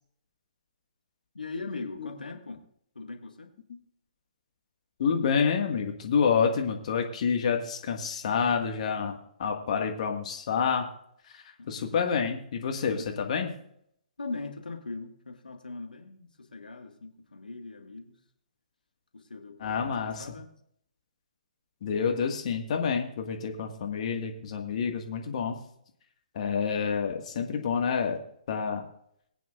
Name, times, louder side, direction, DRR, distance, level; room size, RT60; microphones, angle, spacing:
voice 1, 1.3-2.6 3.0-3.5 11.6-11.9 12.9-13.1 14.2-18.2 19.1-20.5, left 3 dB, 80° left, 4 dB, 1.8 m, -40 dB
voice 2, 5.0-10.9 11.2-13.5 19.6-20.4 21.8-25.6 26.3-28.2 28.5-28.8, left 6 dB, 50° left, 3 dB, 1.7 m, -28 dB
22.0 x 9.2 x 2.5 m, 0.71 s
figure-of-eight pair, 130°, 5 cm